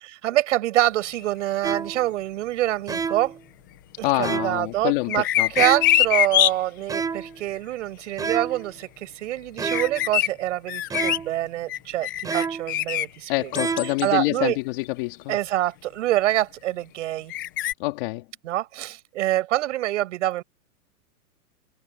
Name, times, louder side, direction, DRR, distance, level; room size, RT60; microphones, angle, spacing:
voice 1, 0.2-3.4 4.0-13.5 14.0-14.6 15.3-17.3 18.4-20.4, right 15 dB, 50° right, 7.3 m, -26 dB
sound 1, 1.6-2.1 2.9-3.4 4.2-4.7 5.6-6.1 6.9-7.4 8.2-8.7 9.6-10.1 10.9-11.4 12.2-12.8 13.5-14.0, right 5 dB, 10° right, 3.5 m, -29 dB
voice 2, 4.0-5.5 13.3-15.4 17.8-18.2, left 22 dB, 35° left, 3.0 m, -26 dB
sound 2, 5.1-6.5 9.7-10.3 10.7-11.2 11.7-13.0 13.5-14.1 14.8-14.9 17.3-17.7, left 13 dB, 15° left, 0.5 m, -23 dB
hypercardioid pair, 165°, 45 cm